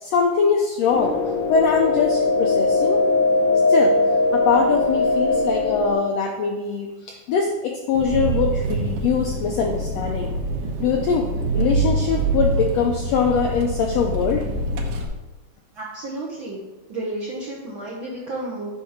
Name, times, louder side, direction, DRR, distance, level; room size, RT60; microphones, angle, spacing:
voice 1, 0.0-1.2 1.5-3.0 3.7-4.0 4.3-10.3 10.8-11.3 11.5-14.4, left 5 dB, 80° left, 2 dB, 1.5 m, -22 dB
sound 1, 0.9-5.9, left 3 dB, 60° left, 1.6 m, -20 dB
Engine, 8.0-15.0, right 2 dB, 80° right, 2.4 m, -25 dB
voice 2, 15.7-16.6 16.9-18.7, right 2 dB, 65° right, -4 dB, 1.2 m, -31 dB
8.3 x 4.4 x 5.6 m, 1.1 s
omnidirectional pair, 3.7 m